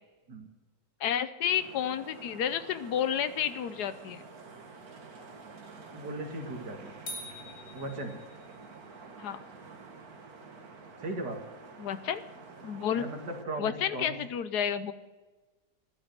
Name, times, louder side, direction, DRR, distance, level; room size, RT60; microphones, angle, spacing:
voice 1, 1.0-4.2 9.2-9.4 11.8-12.2 12.6-13.1 13.6-14.9, left 9 dB, 75° left, 13 dB, 1.3 m, -31 dB
sound 1, 1.5-13.4, right 4 dB, 60° right, 2.0 m, -49 dB
voice 2, 5.9-6.9 7.7-8.1 11.0-11.4 12.9-14.2, right 2 dB, 75° right, 2 dB, 2.8 m, -37 dB
sound 2, 7.1-8.7, left 1 dB, 60° left, 4.1 m, -44 dB
13.5 x 12.0 x 6.6 m, 1.2 s
omnidirectional pair, 1.8 m